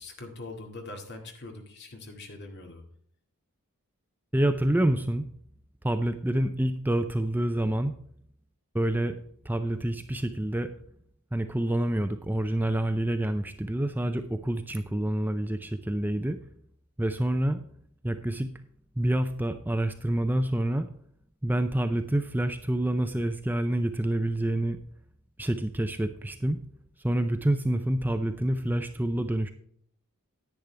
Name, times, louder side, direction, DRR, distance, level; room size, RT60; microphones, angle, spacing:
voice 1, 0.0-2.8, left 2 dB, 50° left, 3 dB, 2.1 m, -42 dB
voice 2, 4.3-5.2 5.8-8.0 8.7-9.2 9.4-10.7 11.3-16.4 17.0-17.6 18.0-18.5 19.0-20.9 21.4-24.8 25.4-26.6 27.0-29.5, right 1 dB, 10° right, 8 dB, 0.5 m, -27 dB
10.5 x 9.6 x 3.3 m, 0.64 s
head